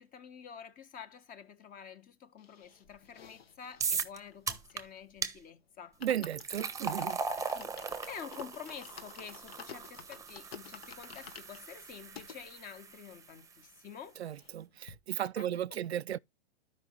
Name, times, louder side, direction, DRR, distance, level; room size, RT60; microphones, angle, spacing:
voice 1, 0.0-6.0 7.5-14.2 15.4-15.5, left 7 dB, 25° left, 1.5 m, -49 dB
sound 1, 2.4-5.2 5.5-5.6 5.8-12.4 13.0-13.1 13.2-13.3 13.6-14.6 14.9-15.0, left 7 dB, 70° left, 1.6 m, -51 dB
sound 2, 3.8-4.2 4.5-4.8 5.2-5.3 6.0-13.2, right 5 dB, 10° right, 1.1 m, -38 dB
voice 2, 6.0-7.2 14.2-16.2, right 11 dB, 90° right, 0.5 m, -35 dB
13.0 x 5.4 x 3.2 m
hypercardioid pair, 115°, 31 cm